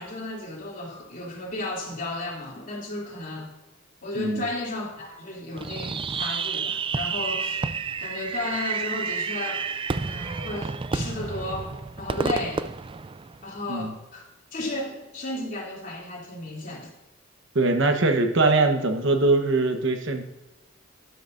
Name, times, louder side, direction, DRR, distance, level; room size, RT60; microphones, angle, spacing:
voice 1, 0.0-3.5 4.0-7.6 8.0-9.6 9.9-11.7 12.0-12.7 13.4-14.2 14.5-16.9, left 2 dB, 40° left, -3 dB, 3.0 m, -34 dB
Fireworks, 5.6-13.7, right 5 dB, 25° right, 0.4 m, -30 dB
voice 2, 17.5-20.2, right 3 dB, 65° right, 5 dB, 1.2 m, -22 dB
12.0 x 11.0 x 2.6 m, 1.0 s
head